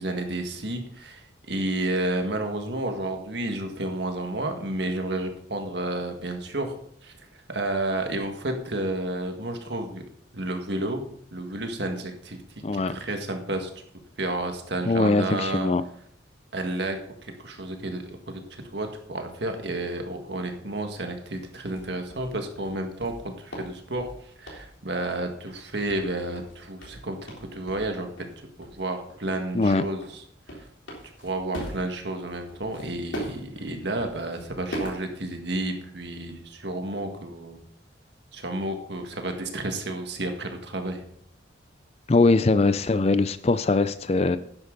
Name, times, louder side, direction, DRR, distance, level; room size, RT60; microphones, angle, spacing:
voice 1, 0.0-6.7 7.0-7.1 7.5-10.0 10.3-11.1 11.3-13.7 14.2-15.7 16.5-24.1 24.4-28.1 28.6-30.2 30.5-30.7 31.2-37.6 38.3-41.0, right 1 dB, 60° right, 4 dB, 1.8 m, -31 dB
voice 2, 12.6-13.0 14.9-15.8 29.5-29.8 42.1-44.4, left 3 dB, 30° left, 14 dB, 0.4 m, -21 dB
sound 1, 21.3-21.4 21.7-25.2 25.5-27.9 28.2-28.4 28.6-28.8 29.1-35.7, right 1 dB, 80° left, 3.5 m, -39 dB
11.5 x 9.7 x 3.9 m, 0.66 s
head